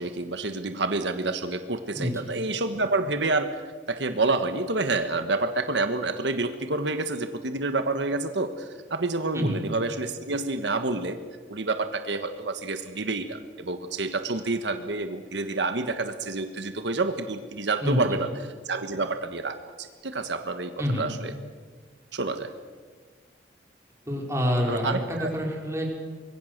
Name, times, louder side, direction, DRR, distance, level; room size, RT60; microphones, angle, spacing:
voice 1, 0.0-3.6 3.9-11.2 11.5-21.3 22.1-22.5 24.7-25.3, right 3 dB, 80° right, 8 dB, 1.4 m, -28 dB
voice 2, 24.1-25.9, equal, 15° right, -1 dB, 4.7 m, -27 dB
25.0 x 22.0 x 6.7 m, 1.6 s
head